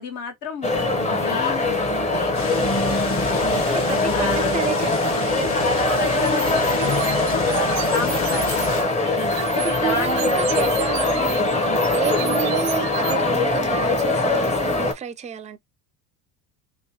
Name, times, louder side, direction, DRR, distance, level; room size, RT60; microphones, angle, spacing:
voice 1, 0.0-3.1 3.5-4.4 6.0-6.9 7.2-9.1 9.5-10.4 12.2-12.4, left 5 dB, 65° left, 1.6 m, -33 dB
sound 1, 0.6-14.9, left 2 dB, 20° left, 0.8 m, -22 dB
sound 2, 2.3-8.8, left 4 dB, 35° left, 1.1 m, -32 dB
voice 2, 3.7-5.5 7.5-7.8 9.6-11.6 11.9-15.6, right 8 dB, 20° right, 0.4 m, -30 dB
sound 3, 6.2-8.7 9.0-13.1, right 17 dB, 85° right, 0.6 m, -34 dB
3.1 x 3.1 x 2.7 m
supercardioid pair, 115°, 37 cm